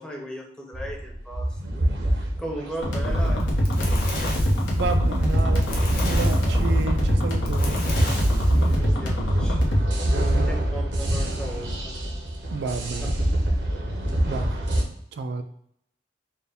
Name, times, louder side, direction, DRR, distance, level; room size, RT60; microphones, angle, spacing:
voice 1, 0.0-1.6 2.1-3.4 8.5-9.6 10.2-12.0, right 1 dB, 5° left, -1 dB, 0.7 m, -36 dB
sound 1, 0.7-14.8, right 1 dB, 80° right, 0.8 m, -25 dB
sound 2, 2.8-9.8, equal, 75° left, 1.1 m, -24 dB
Fire, 3.3-8.8, left 2 dB, 55° left, 0.9 m, -35 dB
voice 2, 4.7-5.7 6.0-7.8 10.0-10.5 12.5-13.1 14.2-14.5 15.1-15.4, right 4 dB, 65° right, 7 dB, 0.3 m, -31 dB
4.3 x 2.3 x 3.4 m, 0.69 s
head